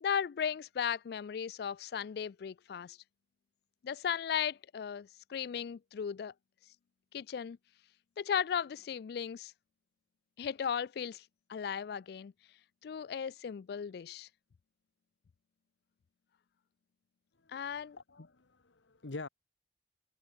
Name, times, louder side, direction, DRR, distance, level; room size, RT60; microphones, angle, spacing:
voice 1, 0.0-3.0 3.8-6.3 7.1-7.6 8.2-9.5 10.4-11.2 11.5-12.3 12.8-14.3 17.5-18.0, left 7 dB, 60° left, 0.3 m, -36 dB
voice 2, 17.4-19.3, left 3 dB, 90° left, 1.2 m, -47 dB
head